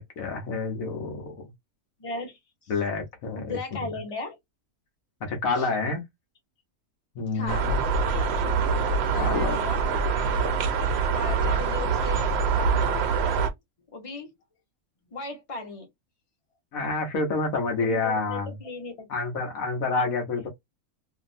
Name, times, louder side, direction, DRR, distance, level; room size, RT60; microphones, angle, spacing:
voice 1, 0.0-1.4 2.7-3.6 5.2-6.0 7.1-7.8 9.1-9.6 16.7-18.5 19.1-20.5, left 3 dB, 70° left, 1.3 m, -28 dB
voice 2, 2.0-2.7 3.4-4.4 5.5-5.7 7.3-7.7 9.1-9.8 11.1-12.2 12.5-13.4 13.9-14.3 15.1-15.9 17.8-19.1, left 3 dB, 25° left, 1.1 m, -37 dB
sound 1, 7.5-13.5, right 5 dB, 60° right, 0.7 m, -24 dB
2.8 x 2.6 x 2.5 m
omnidirectional pair, 1.5 m